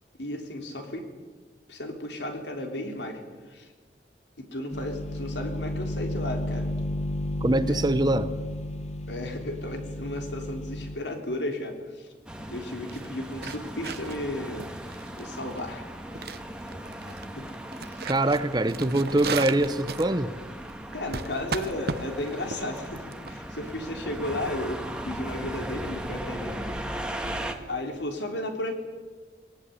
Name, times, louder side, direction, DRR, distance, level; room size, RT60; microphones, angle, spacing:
voice 1, 0.2-1.1 1.7-3.2 3.5-3.7 4.4-6.7 7.7-7.8 9.1-12.1 12.5-14.8 15.2-15.9 16.2-16.4 17.1-17.6 17.8-18.1 20.9-26.6 27.7-28.7, left 1 dB, 85° left, 3.7 m, -34 dB
sound 1, 4.7-11.0, left 1 dB, 40° left, 1.2 m, -32 dB
voice 2, 7.4-8.3 18.0-20.3, right 1 dB, 25° right, 0.9 m, -24 dB
sound 2, 12.3-27.5, right 1 dB, 5° right, 1.8 m, -38 dB
sound 3, 12.6-24.2, right 4 dB, 60° right, 1.0 m, -37 dB
21.5 x 18.0 x 10.0 m
head